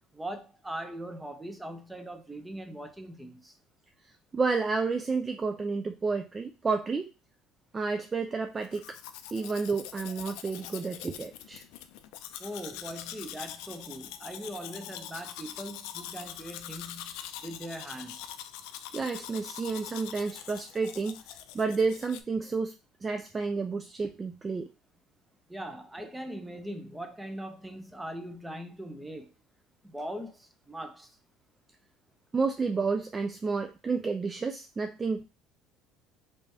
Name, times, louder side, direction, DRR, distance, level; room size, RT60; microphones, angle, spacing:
voice 1, 0.1-3.5 12.4-18.3 25.5-29.3 29.8-31.1, right 1 dB, 10° right, 0.7 m, -40 dB
voice 2, 4.3-7.1 7.7-9.0 9.3-11.6 18.9-21.1 21.5-22.8 23.0-24.7 32.3-35.2, right 4 dB, 25° right, 0.4 m, -30 dB
Domestic sounds home sounds, 8.6-22.2, left 11 dB, 80° left, 0.3 m, -44 dB
3.4 x 3.0 x 2.7 m
supercardioid pair, 85°, 0 cm